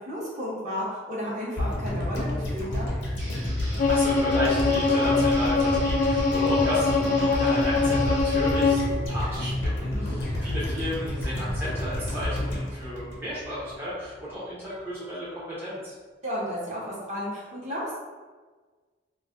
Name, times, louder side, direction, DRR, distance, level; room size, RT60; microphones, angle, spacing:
voice 1, 0.0-2.9 9.8-10.2 16.2-18.0, equal, 40° right, -7 dB, 0.9 m, -33 dB
sound 1, 1.6-13.8 14.0-14.1, left 1 dB, 70° left, 0.8 m, -30 dB
Guitar, 3.2-8.6, right 1 dB, 90° right, 0.9 m, -42 dB
voice 2, 3.5-15.9, equal, 10° right, -10 dB, 0.6 m, -34 dB
Bowed string instrument, 3.8-8.9, left 3 dB, 45° left, 0.3 m, -23 dB
2.4 x 2.1 x 3.4 m, 1.4 s
head